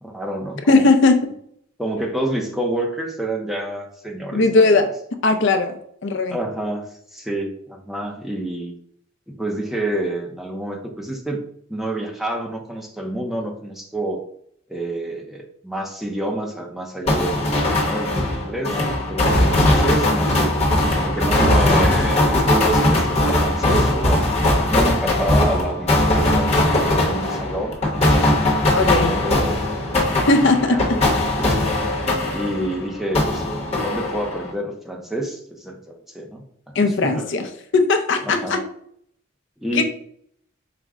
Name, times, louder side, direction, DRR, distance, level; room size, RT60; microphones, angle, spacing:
voice 1, 0.0-0.8 1.8-4.8 6.3-6.9 7.1-8.7 9.3-11.4 11.7-14.2 14.7-18.8 19.1-20.6 21.0-24.3 24.7-28.0 28.7-30.0 30.7-31.0 31.4-31.6 32.3-37.3 38.3-38.6 39.6-39.8, right 1 dB, ahead, 1 dB, 0.5 m, -28 dB
voice 2, 0.7-1.2 4.3-4.9 5.2-5.8 6.0-6.4 28.7-29.2 30.3-31.0 36.8-38.6 39.7-39.8, left 3 dB, 65° left, 6 dB, 0.5 m, -18 dB
sound 1, 17.1-32.8 33.1-34.5, left 1 dB, 30° left, 0.9 m, -19 dB
4.9 x 2.1 x 3.5 m, 0.67 s
head